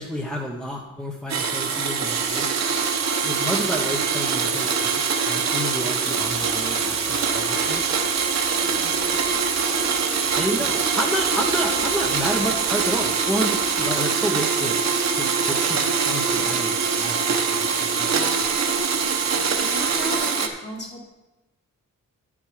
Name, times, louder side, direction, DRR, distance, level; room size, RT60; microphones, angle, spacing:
voice 1, 0.0-2.6 3.2-8.0 10.4-14.8 15.2-18.5, equal, ahead, 1 dB, 0.8 m, -30 dB
Domestic sounds home sounds, 1.3-20.5, right 5 dB, 55° right, 0.9 m, -24 dB
sound 1, 2.0-20.1, right 6 dB, 85° right, 1.1 m, -34 dB
sound 2, 6.1-14.0, left 1 dB, 75° left, 4.2 m, -44 dB
voice 2, 8.6-9.2 19.6-21.1, equal, 35° left, -1 dB, 1.9 m, -36 dB
10.5 x 7.3 x 4.9 m, 1.0 s
wide cardioid pair, 160°, 32 cm